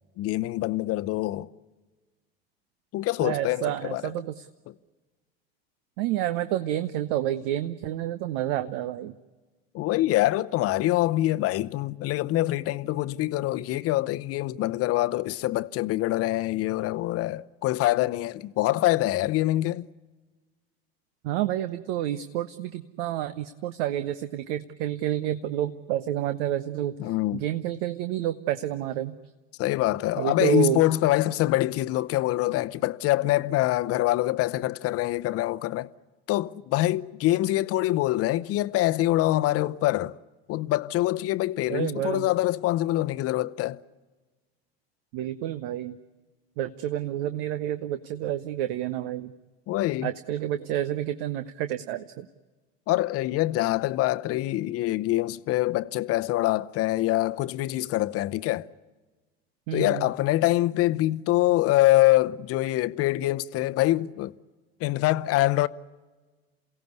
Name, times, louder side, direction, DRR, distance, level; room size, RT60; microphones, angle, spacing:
voice 1, 0.2-1.5 2.9-4.0 9.7-19.9 27.0-27.5 29.6-35.9 36.3-40.2 40.5-43.8 49.7-50.1 52.9-58.7 59.7-64.3 64.8-65.7, left 16 dB, 50° left, 0.8 m, -25 dB
voice 2, 3.2-4.5 6.0-9.1 21.2-29.2 30.2-30.8 41.7-42.3 45.1-46.0 46.6-49.3 50.0-52.3 59.7-60.1, right 12 dB, 65° right, 0.9 m, -29 dB
28.5 x 17.0 x 9.5 m
hypercardioid pair, 75°, 31 cm